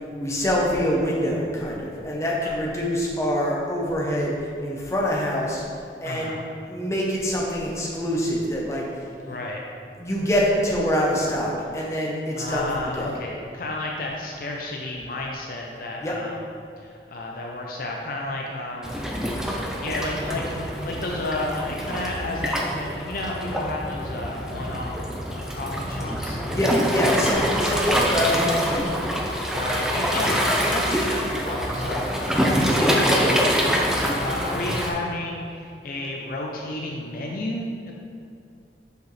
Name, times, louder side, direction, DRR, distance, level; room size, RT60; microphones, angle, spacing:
voice 1, 0.2-5.6 6.0-6.4 6.6-8.9 9.2-9.3 10.0-13.2 16.0-16.1 26.5-29.0, equal, 15° left, -3 dB, 0.8 m, -25 dB
voice 2, 6.0-6.4 9.3-9.6 12.3-16.4 16.8-19.0 19.8-24.9 25.3-26.4 29.5-37.9, left 2 dB, 55° left, -1 dB, 0.5 m, -32 dB
Waves surf, 18.8-34.9, equal, 5° right, 0.4 m, -25 dB
6.6 x 4.8 x 3.2 m, 2.4 s
head